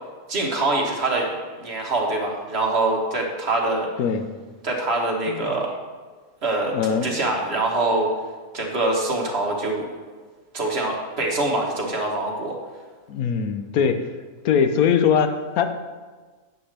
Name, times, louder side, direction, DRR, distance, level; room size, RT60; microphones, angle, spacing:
voice 1, 0.3-3.9 4.6-5.7 6.4-8.1 8.5-9.9 10.5-12.6, right 2 dB, 50° right, 0 dB, 1.6 m, -24 dB
voice 2, 6.7-7.1 13.1-14.1 14.4-15.7, left 7 dB, 90° left, 8 dB, 1.2 m, -21 dB
10.5 x 8.2 x 3.4 m, 1.4 s
omnidirectional pair, 1.5 m